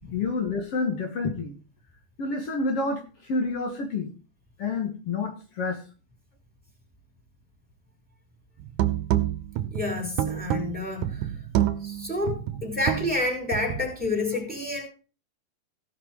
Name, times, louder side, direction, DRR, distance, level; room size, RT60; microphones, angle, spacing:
voice 1, 0.1-1.6 2.2-4.1 4.6-5.8, left 3 dB, 55° left, 4 dB, 2.3 m, -28 dB
sound 1, 8.6-13.9, right 12 dB, 80° right, 2.3 m, -28 dB
voice 2, 9.7-11.3 11.8-14.8, left 2 dB, 5° right, -1 dB, 4.8 m, -29 dB
16.5 x 6.1 x 4.7 m, 0.36 s
omnidirectional pair, 3.5 m